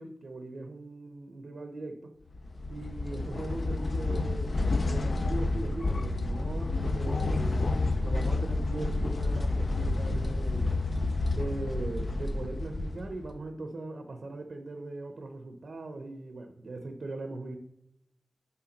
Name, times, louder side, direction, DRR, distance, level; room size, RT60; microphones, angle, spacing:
voice 1, 0.0-2.1 2.7-7.7 8.0-10.7 11.3-17.6, right 2 dB, 65° right, 5 dB, 0.7 m, -40 dB
sound 1, 2.3-13.4, left 2 dB, 50° left, 0.5 m, -29 dB
5.8 x 4.7 x 5.2 m, 0.78 s
cardioid pair, 65°, 0 cm